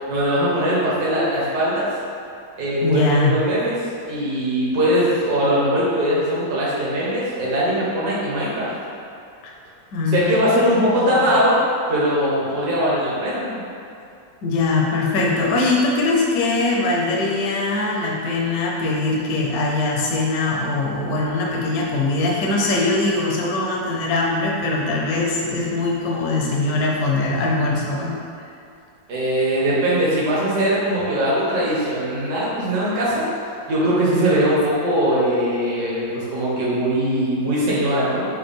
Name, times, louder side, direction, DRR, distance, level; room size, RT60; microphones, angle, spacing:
voice 1, 0.1-1.9 2.6-3.8 4.1-8.7 10.1-11.6 11.9-13.6 29.1-33.3 33.7-38.3, equal, 60° right, -7 dB, 1.5 m, -21 dB
voice 2, 2.8-3.4 9.9-10.6 11.0-11.4 14.4-28.1, left 2 dB, 65° left, -2 dB, 1.0 m, -21 dB
6.6 x 2.3 x 3.6 m, 2.5 s
omnidirectional pair, 2.1 m